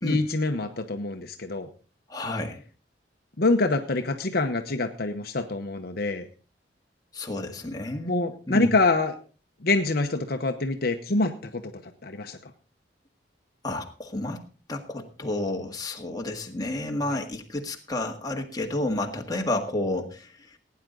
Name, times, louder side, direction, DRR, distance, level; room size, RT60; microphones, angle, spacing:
voice 1, 0.0-1.7 3.4-6.3 8.1-9.1 9.6-11.7 12.0-12.5 17.1-17.2, left 2 dB, 55° left, 6 dB, 1.0 m, -25 dB
voice 2, 2.1-2.6 7.1-8.7 13.6-14.4 14.7-20.6, left 1 dB, 20° left, 2 dB, 1.7 m, -30 dB
17.0 x 9.5 x 3.9 m, 0.36 s
head